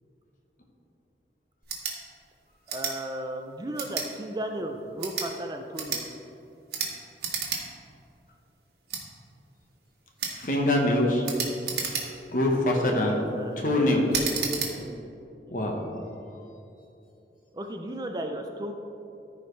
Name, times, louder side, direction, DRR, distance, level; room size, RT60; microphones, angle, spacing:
sound 1, 1.6-2.0 2.7-3.0 3.8-4.1 4.9-5.3 5.7-6.0 6.7-6.9 7.2-7.6 8.0-8.1 8.9-9.0 10.2-10.4 11.2-12.3 12.9-13.2 14.1-14.7, right 6 dB, 65° right, 1.4 m, -31 dB
voice 1, 2.7-6.1 12.9-13.1 13.4-13.9 14.8-15.1 15.5-15.6 17.5-18.7, right 1 dB, 20° right, 4 dB, 0.4 m, -35 dB
voice 2, 10.4-11.2 12.3-13.2 13.6-14.0 15.5-15.8, left 1 dB, 50° left, 0 dB, 1.2 m, -23 dB
14.0 x 5.0 x 3.2 m, 2.8 s
head